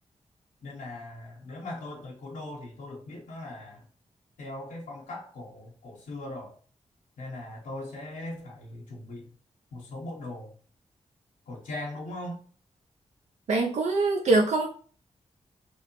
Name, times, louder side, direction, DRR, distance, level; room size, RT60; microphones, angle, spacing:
voice 1, 0.6-3.9 4.4-6.6 7.2-9.3 9.7-10.5 11.5-12.4, left 1 dB, 85° left, -2 dB, 0.7 m, -39 dB
voice 2, 13.5-14.7, right 3 dB, 70° right, 0 dB, 0.4 m, -23 dB
2.9 x 2.1 x 2.9 m, 0.42 s
cardioid pair, 45°, 13 cm